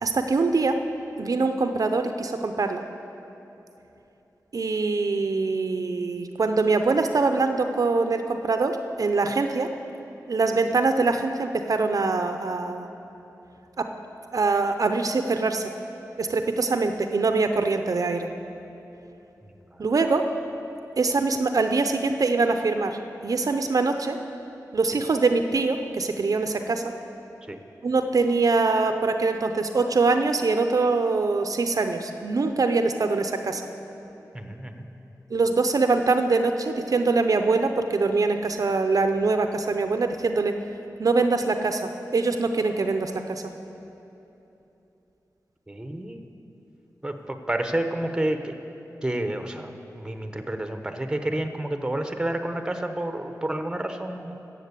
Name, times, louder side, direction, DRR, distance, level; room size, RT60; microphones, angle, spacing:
voice 1, 0.0-0.8 1.2-2.8 4.5-9.7 10.3-12.9 13.8-13.9 14.3-15.7 16.2-18.3 19.8-20.3 21.0-24.2 24.7-26.9 27.8-33.6 35.3-40.6 41.0-43.4, right 3 dB, 60° right, 6 dB, 0.6 m, -23 dB
voice 2, 34.3-34.8 45.7-46.2 47.0-48.5 49.0-54.3, right 1 dB, 10° right, 6 dB, 0.9 m, -29 dB
14.0 x 7.2 x 8.3 m, 3.0 s
wide cardioid pair, 85°, 7 cm